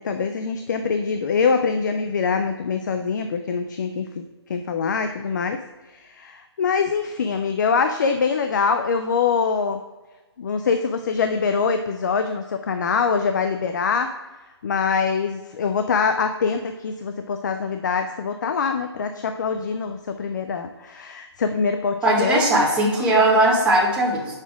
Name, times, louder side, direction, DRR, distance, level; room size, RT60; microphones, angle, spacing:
voice 1, 0.0-5.6 5.9-9.8 10.4-14.1 14.6-22.7, left 5 dB, 40° left, 7 dB, 0.5 m, -24 dB
voice 2, 22.0-24.3, right 1 dB, 10° right, -6 dB, 1.5 m, -19 dB
8.3 x 6.5 x 3.6 m, 1.2 s
hypercardioid pair, 155°, 14 cm